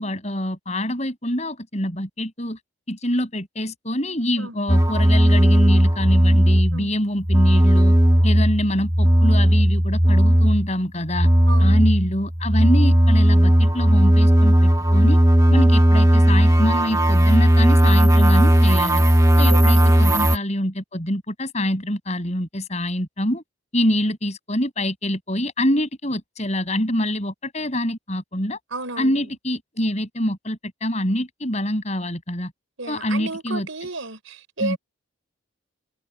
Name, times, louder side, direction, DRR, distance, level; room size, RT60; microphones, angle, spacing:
voice 1, 0.0-2.6 2.9-8.0 8.2-11.3 11.6-15.2 15.5-19.0 19.4-23.4 23.7-28.6 29.0-32.5 32.9-33.7 34.6-34.8, left 1 dB, 35° left, 7.5 m, -25 dB
sound 1, 4.7-6.9 7.2-10.7 11.1-20.4, equal, 15° right, 1.5 m, -16 dB
voice 2, 11.5-11.9 19.5-20.2 28.7-29.2 32.8-34.8, right 3 dB, 75° right, 4.4 m, -33 dB
head